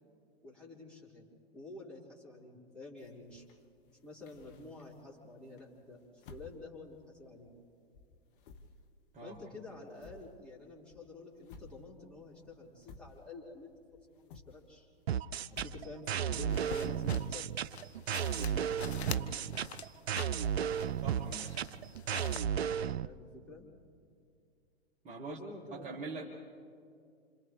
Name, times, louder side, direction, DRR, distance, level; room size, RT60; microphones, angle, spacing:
voice 1, 0.4-1.3 1.5-3.4 4.0-7.5 9.2-14.9 15.4-17.5 18.3-19.4 23.0-23.7 25.2-25.9, left 2 dB, 5° left, -7 dB, 5.0 m, -49 dB
sound 1, 3.0-5.1 5.6-7.7 7.9-13.6 13.9-17.3, left 4 dB, 50° left, 1.6 m, -54 dB
sound 2, 15.1-23.1, right 8 dB, 75° right, 0.6 m, -34 dB
sound 3, 16.5-22.4, left 7 dB, 80° left, 0.9 m, -47 dB
voice 2, 21.0-21.8 25.0-25.4 25.7-26.2, right 3 dB, 20° right, -2 dB, 2.0 m, -43 dB
30.0 x 27.0 x 3.4 m, 2.3 s
figure-of-eight pair, 115°, 32 cm